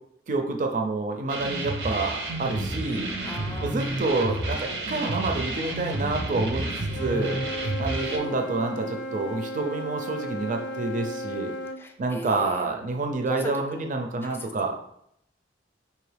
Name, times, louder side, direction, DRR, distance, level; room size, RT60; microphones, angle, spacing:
voice 1, 0.3-3.1 3.6-6.7 7.0-7.4 7.8-11.5 12.0-14.7, right 3 dB, 45° right, 4 dB, 0.4 m, -28 dB
sound 1, 1.3-8.2, right 1 dB, 85° right, 0.8 m, -30 dB
voice 2, 3.0-4.7 8.0-8.7 11.8-12.7 13.3-13.8 14.2-14.5, equal, 15° left, 3 dB, 0.4 m, -40 dB
Wind instrument woodwind instrument, 6.9-11.8, equal, 85° left, 0.5 m, -35 dB
4.6 x 2.7 x 3.3 m, 0.73 s
head